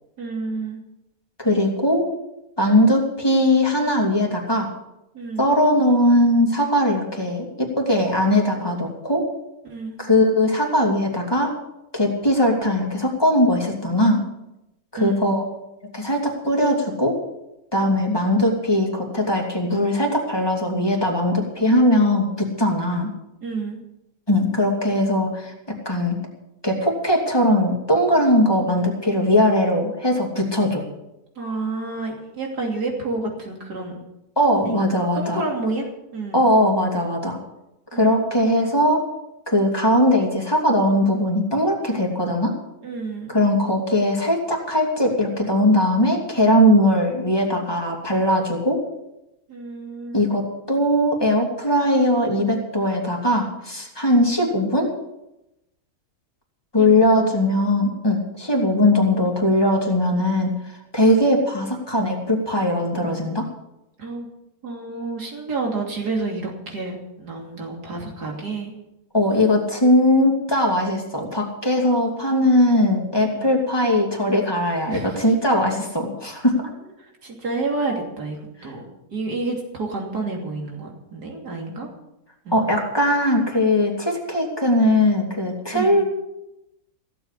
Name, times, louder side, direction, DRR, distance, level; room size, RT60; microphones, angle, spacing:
voice 1, 0.2-0.8 5.1-5.5 9.6-10.0 14.9-15.3 23.4-23.8 31.4-34.0 34.6-36.5 37.9-38.2 42.8-43.4 49.5-50.4 56.8-57.1 57.4-57.5 64.0-64.3 64.6-68.7 73.3-73.5 74.9-75.2 77.0-78.8 79.1-81.9 82.5-82.6 85.7-85.9, right 3 dB, 80° right, 0 dB, 3.4 m, -29 dB
voice 2, 1.4-2.1 2.6-4.7 5.4-9.3 10.0-11.5 11.9-14.2 14.9-15.4 15.9-17.2 17.7-23.1 24.3-26.2 26.6-30.8 34.4-35.4 36.3-37.4 37.9-39.0 39.5-42.5 43.3-48.8 50.1-54.9 56.7-60.6 60.9-63.5 69.1-76.6 82.5-86.0, left 1 dB, 15° left, 0 dB, 2.7 m, -20 dB
16.0 x 7.9 x 8.3 m, 0.91 s
omnidirectional pair, 1.7 m